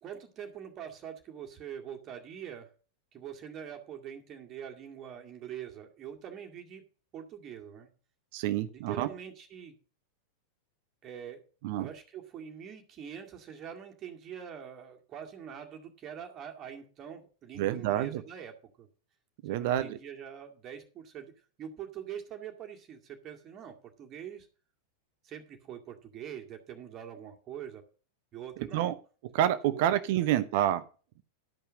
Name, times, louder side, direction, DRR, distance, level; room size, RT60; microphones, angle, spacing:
voice 1, 0.0-2.7 3.1-6.8 7.1-7.9 8.7-9.7 11.0-11.4 11.8-18.9 19.5-21.3 21.6-24.5 25.2-27.8 28.3-28.9 29.6-29.8 30.2-30.3, right 9 dB, 30° right, 3 dB, 2.1 m, -44 dB
voice 2, 8.3-9.1 11.6-11.9 17.6-18.2 19.4-20.0 28.7-28.9 29.3-30.8, right 12 dB, 50° right, 13 dB, 0.7 m, -28 dB
12.5 x 5.6 x 6.2 m, 0.38 s
figure-of-eight pair, 90°, 0 cm